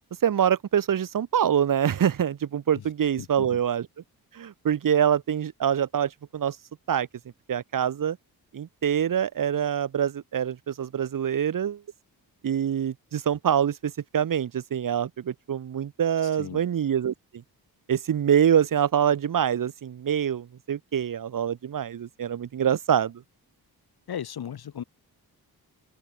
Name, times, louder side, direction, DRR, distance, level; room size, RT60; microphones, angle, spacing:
voice 1, 0.2-3.9 4.3-6.6 6.9-7.1 7.5-8.2 8.5-11.8 12.4-17.1 17.9-23.2, right 9 dB, 60° right, 1.8 m, -25 dB
voice 2, 3.2-3.6 16.2-16.6 24.1-24.8, left 9 dB, 75° left, 5.6 m, -37 dB
open air
wide cardioid pair, 180°, 38 cm